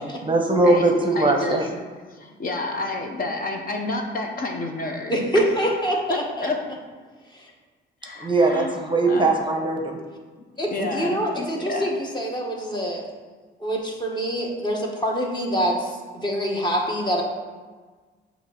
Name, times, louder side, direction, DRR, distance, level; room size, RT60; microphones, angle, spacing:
voice 1, 0.0-1.7 8.2-10.0 10.8-10.9, right 2 dB, 25° right, 3 dB, 0.8 m, -21 dB
voice 2, 0.6-1.7 2.1-5.1 5.5-5.8 6.1-6.6 8.0-8.7 9.1-9.4 10.7-11.9, left 2 dB, 45° left, 2 dB, 0.9 m, -30 dB
voice 3, 5.1-6.5 7.3-7.4 10.6-13.1 13.6-17.2, equal, 20° left, -1 dB, 1.4 m, -25 dB
6.8 x 2.9 x 5.9 m, 1.4 s
cardioid pair, 90°, 20 cm